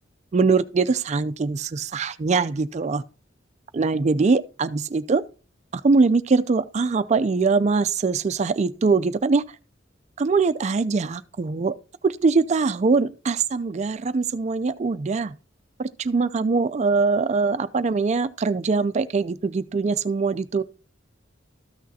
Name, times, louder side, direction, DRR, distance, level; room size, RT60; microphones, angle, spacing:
voice 1, 0.3-3.0 3.7-5.2 5.7-9.4 10.2-11.7 12.0-15.4 15.8-20.6, right 4 dB, 35° right, 0.4 m, -22 dB
13.5 x 6.3 x 2.7 m
head